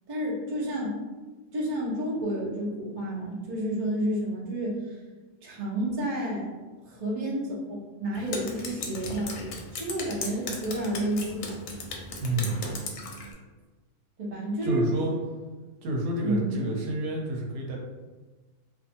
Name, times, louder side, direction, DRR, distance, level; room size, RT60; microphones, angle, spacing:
voice 1, 0.1-1.0 1.5-5.0 5.4-6.5 6.9-9.3 9.7-11.6 14.2-14.8 16.2-16.6, right 1 dB, 60° right, -5 dB, 0.3 m, -30 dB
Drip, 8.1-13.3, left 3 dB, 75° left, 1.0 m, -37 dB
voice 2, 12.2-12.6 14.6-15.1 15.8-17.8, right 1 dB, 85° right, -1 dB, 1.2 m, -29 dB
2.6 x 2.5 x 2.6 m, 1.3 s
omnidirectional pair, 1.7 m